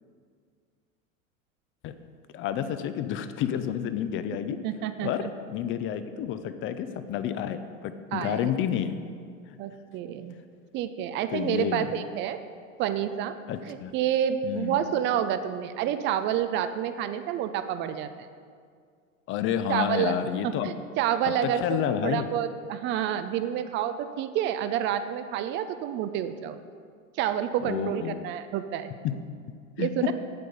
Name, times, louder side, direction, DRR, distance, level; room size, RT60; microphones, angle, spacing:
voice 1, 2.3-4.6 5.0-5.2 5.5-8.9 11.3-11.9 13.5-13.9 14.4-14.8 19.3-20.7 21.2-22.3 27.6-28.2 29.0-29.2 29.8-29.9, left 9 dB, 30° left, 10 dB, 0.5 m, -30 dB
voice 2, 4.6-5.3 8.1-8.5 9.6-10.4 10.7-12.4 12.8-13.4 13.7-18.1 19.7-20.1 20.4-26.6 27.2-28.9 29.8-30.1, right 10 dB, 30° right, 11 dB, 0.4 m, -29 dB
8.5 x 7.7 x 5.3 m, 2.1 s
figure-of-eight pair, 85°, 40 cm